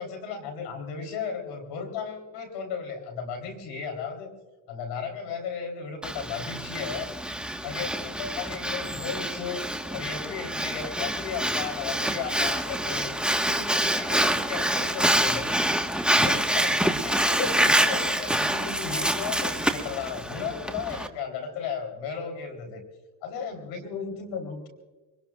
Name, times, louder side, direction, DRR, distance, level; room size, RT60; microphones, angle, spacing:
voice 1, 0.0-4.3 4.7-7.1 7.6-9.6 9.9-13.1 13.5-15.4 16.1-22.8 23.2-24.7, left 6 dB, 90° left, 4 dB, 3.9 m, -34 dB
Breathing, 6.0-21.1, right 1 dB, ahead, 1.4 m, -26 dB
24.5 x 20.5 x 2.5 m, 1.2 s
supercardioid pair, 65°, 43 cm